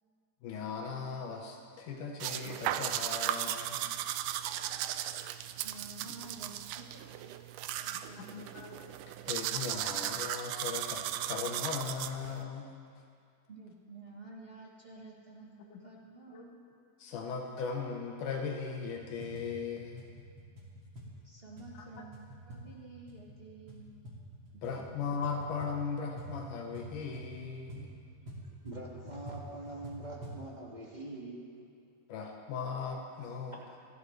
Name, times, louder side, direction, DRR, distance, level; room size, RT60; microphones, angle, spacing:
voice 1, 0.4-3.8 8.2-8.8 9.2-12.7 15.7-15.8 16.3-16.4 17.0-20.0 24.6-27.9 32.1-33.6, left 5 dB, 85° left, 2 dB, 2.7 m, -38 dB
sound 1, 2.2-12.4, right 12 dB, 85° right, 2.1 m, -36 dB
voice 2, 5.6-8.5 13.5-15.5 15.8-16.7 21.2-24.0, right 3 dB, 70° right, -4 dB, 0.5 m, -51 dB
sound 2, 18.8-30.5, right 1 dB, 40° right, 3.1 m, -48 dB
voice 3, 28.6-31.7, right 2 dB, 20° right, -4 dB, 1.5 m, -44 dB
28.5 x 12.0 x 3.3 m, 2.2 s
omnidirectional pair, 3.6 m